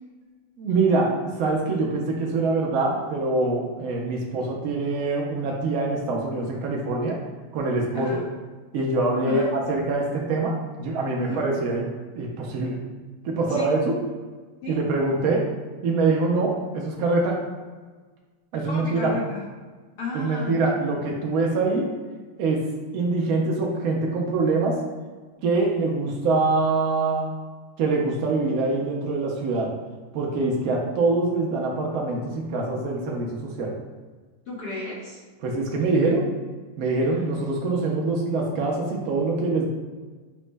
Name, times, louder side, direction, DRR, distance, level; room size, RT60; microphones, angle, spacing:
voice 1, 0.6-7.2 7.5-8.2 8.7-11.9 12.1-12.8 13.2-14.0 14.7-15.5 15.8-17.4 18.5-19.1 20.1-21.9 22.4-22.7 22.9-24.8 25.4-27.3 27.8-29.7 30.1-33.7 35.4-36.3 36.8-39.7, right 3 dB, 85° right, -1 dB, 0.7 m, -24 dB
voice 2, 18.6-19.4 20.0-20.6 34.5-35.2 37.2-37.3, left 3 dB, 60° left, -5 dB, 1.2 m, -33 dB
6.0 x 2.1 x 3.2 m, 1.4 s
omnidirectional pair, 2.2 m